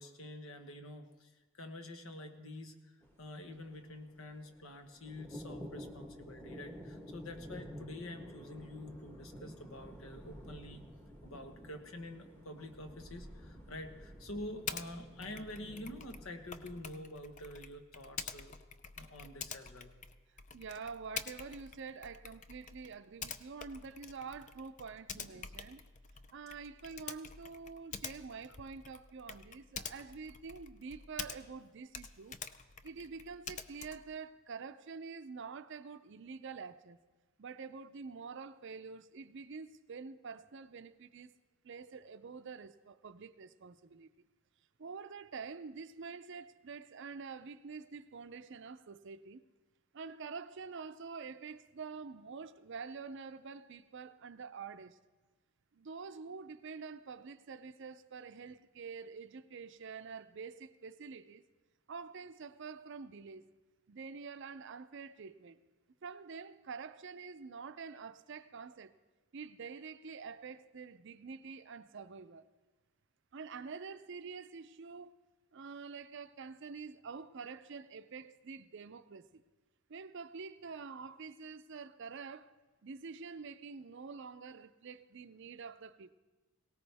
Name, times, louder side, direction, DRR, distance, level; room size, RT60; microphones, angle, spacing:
voice 1, 0.0-10.8 11.2-18.6 19.0-19.9 25.3-25.4, left 1 dB, 70° left, 1.3 m, -47 dB
sound 1, 3.0-16.8, equal, 10° left, 1.4 m, -51 dB
Typing, 14.7-14.9 15.2-31.6 31.9-34.1, left 6 dB, 35° left, 0.5 m, -47 dB
voice 2, 20.5-25.8 26.3-32.4 32.8-37.0 37.4-41.3 41.6-44.1 44.8-49.4 49.9-55.0 55.7-61.4 61.9-63.5 63.9-65.6 66.0-68.9 69.3-72.4 73.3-75.2 75.5-79.4 79.9-82.5 82.8-86.1, right 5 dB, 55° right, 0.5 m, -47 dB
18.0 x 18.0 x 3.5 m
head